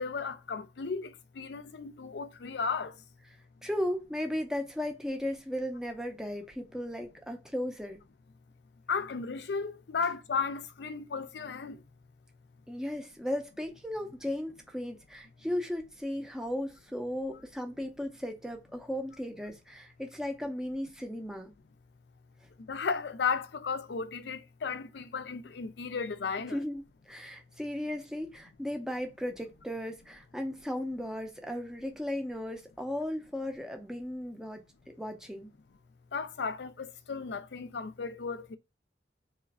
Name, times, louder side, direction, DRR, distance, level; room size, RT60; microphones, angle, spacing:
voice 1, 0.0-2.9 8.9-11.8 22.7-26.6 36.1-38.6, left 5 dB, 70° left, 0.5 m, -34 dB
voice 2, 3.6-8.0 12.7-21.5 26.5-34.6 35.0-35.5, left 1 dB, 5° right, 0.5 m, -36 dB
3.0 x 2.4 x 4.0 m
head